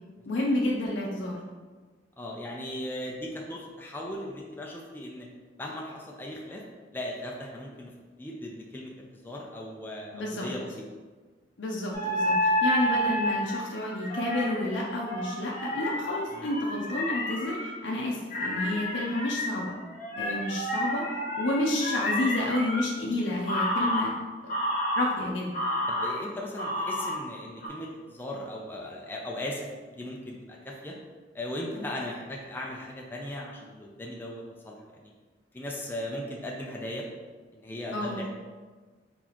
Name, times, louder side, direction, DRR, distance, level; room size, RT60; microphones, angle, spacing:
voice 1, 0.3-1.4 10.1-10.5 11.6-19.7 20.2-21.0 21.4-24.1 24.4-24.5 25.0-25.5 37.9-38.2, left 1 dB, 75° left, -2 dB, 0.6 m, -30 dB
voice 2, 2.2-5.3 5.6-6.6 6.9-10.7 16.3-16.5 25.9-31.0 31.3-35.1 35.5-37.1 37.5-38.3, left 1 dB, 10° left, -2 dB, 0.4 m, -38 dB
sound 1, 11.9-17.7 18.3-22.8 23.5-24.0 24.5-25.1 25.5-26.1 26.6-27.1 27.6-27.7, left 1 dB, 45° left, 0.9 m, -30 dB
4.0 x 3.6 x 2.9 m, 1.4 s
head